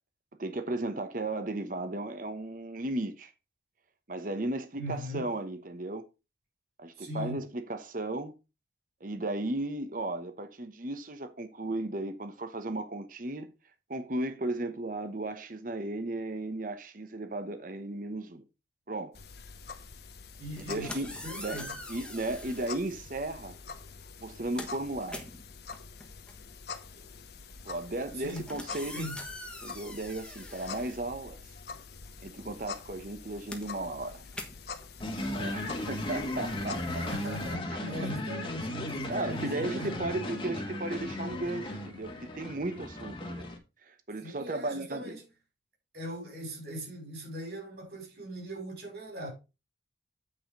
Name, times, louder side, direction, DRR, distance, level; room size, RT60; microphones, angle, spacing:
voice 1, 0.4-3.3 4.1-6.0 6.8-8.3 9.0-13.5 13.9-18.4 18.9-19.2 20.6-21.6 21.9-23.6 24.2-25.3 27.6-29.1 29.6-31.4 32.2-34.2 35.4-37.1 37.6-37.9 39.1-43.5 43.8-45.2, right 2 dB, 45° right, 1.0 m, -35 dB
voice 2, 4.8-5.3 7.0-7.4 20.4-21.7 28.1-28.4 28.9-29.2 36.9-40.1 44.2-45.3 45.9-49.3, right 1 dB, 60° right, 5.2 m, -40 dB
sound 1, 19.1-37.5, left 5 dB, 60° left, 1.0 m, -46 dB
sound 2, 20.4-22.8 23.7-23.9 24.2-31.7 32.0-36.7, left 1 dB, 5° left, 1.3 m, -45 dB
sound 3, 35.0-43.6, left 1 dB, 30° left, 1.5 m, -36 dB
8.6 x 5.0 x 5.2 m
head